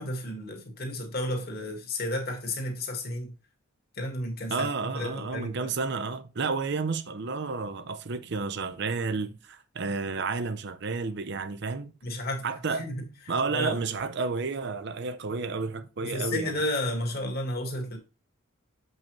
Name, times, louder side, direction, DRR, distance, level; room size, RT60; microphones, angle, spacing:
voice 1, 0.0-3.3 4.0-5.7 12.0-12.5 12.8-13.1 13.5-13.8 16.0-18.0, left 1 dB, 50° left, 1.7 m, -32 dB
voice 2, 4.5-11.9 12.4-12.9 13.3-16.6, right 4 dB, 55° right, 0.6 m, -31 dB
7.1 x 5.5 x 3.0 m
head